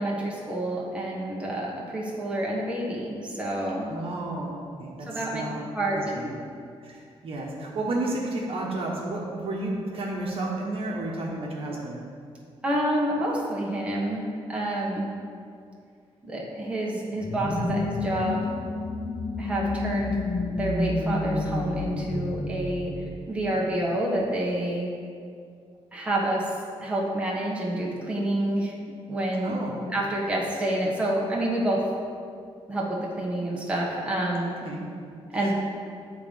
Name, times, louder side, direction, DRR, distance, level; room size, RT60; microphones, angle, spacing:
voice 1, 0.0-3.9 5.1-5.4 5.7-6.0 12.6-15.1 16.2-18.5 19.4-22.9 23.3-24.9 25.9-26.5 26.8-28.7 29.1-29.6 29.9-31.9 32.7-34.5 35.3-35.5, right 1 dB, 10° right, -5 dB, 1.2 m, -28 dB
voice 2, 3.9-4.5 4.8-5.6 5.9-6.3 6.8-12.0 29.4-29.8 34.6-34.8 35.4-35.5, right 2 dB, 60° right, -3 dB, 1.1 m, -32 dB
sound 1, 17.2-23.7, left 2 dB, 30° left, 0.8 m, -30 dB
8.1 x 3.8 x 5.1 m, 2.3 s
cardioid pair, 120°, 11 cm